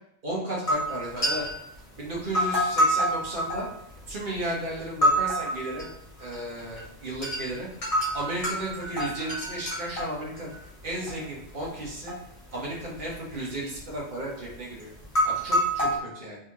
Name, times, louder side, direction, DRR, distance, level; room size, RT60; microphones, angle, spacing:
voice 1, 0.2-1.4 2.0-3.7 4.1-5.9 6.2-7.7 8.1-10.5 10.8-12.1 12.5-14.9 15.2-16.4, right 1 dB, 45° right, -5 dB, 1.5 m, -34 dB
sound 1, 0.7-1.7 2.2-4.4 4.8-5.9 6.2-6.8 7.1-7.4 7.8-11.1 11.4-12.2 12.5-13.3 13.6-13.9 14.5-14.6 15.0-16.0, equal, 30° left, 1.3 m, -27 dB
4.0 x 3.8 x 3.1 m, 0.81 s
omnidirectional pair, 1.2 m